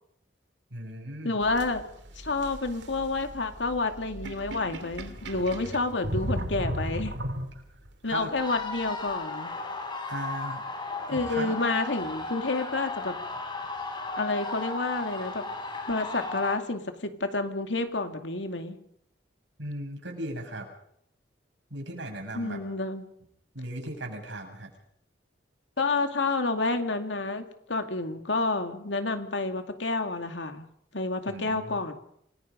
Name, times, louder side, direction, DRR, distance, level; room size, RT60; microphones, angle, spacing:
voice 1, 0.7-1.4 8.1-8.3 10.1-10.6 11.1-11.5 19.6-20.7 21.7-22.6 23.5-24.7 31.3-31.8, right 1 dB, 90° right, 2 dB, 7.3 m, -37 dB
voice 2, 1.2-1.8 2.2-7.1 8.0-9.5 11.1-13.2 14.2-15.4 15.9-18.8 22.3-23.1 25.8-31.9, left 3 dB, 80° left, 6 dB, 2.4 m, -29 dB
sound 1, 1.4-7.9, right 1 dB, 70° right, 2.5 m, -36 dB
sound 2, 8.4-16.6, left 3 dB, 25° left, 4.2 m, -35 dB
28.5 x 20.0 x 5.3 m, 0.71 s
head